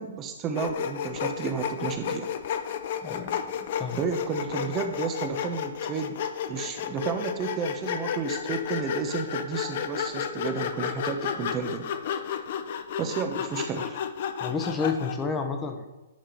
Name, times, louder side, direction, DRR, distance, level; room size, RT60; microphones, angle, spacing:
voice 1, 0.0-2.3 3.9-6.2 6.5-11.9 13.0-14.0, right 6 dB, 25° right, 5 dB, 0.8 m, -32 dB
Sawing, 0.5-15.2, left 8 dB, 55° left, 0.6 m, -32 dB
voice 2, 3.0-3.3 3.8-4.0 14.4-15.9, left 5 dB, 15° left, 4 dB, 1.0 m, -30 dB
10.0 x 3.7 x 4.4 m, 1.1 s
hypercardioid pair, 130°, 0 cm